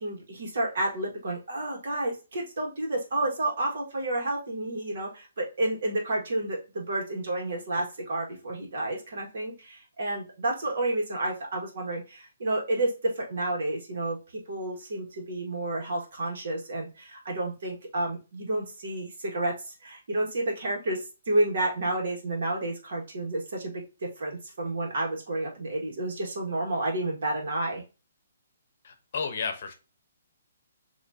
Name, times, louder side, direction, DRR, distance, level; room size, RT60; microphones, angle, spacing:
voice 1, 0.0-14.2 14.5-23.8 24.2-27.8, right 2 dB, 55° right, -1 dB, 1.8 m, -30 dB
voice 2, 28.8-29.7, left 5 dB, 45° left, 6 dB, 0.9 m, -32 dB
6.1 x 3.0 x 2.8 m, 0.30 s
hypercardioid pair, 175°, 0 cm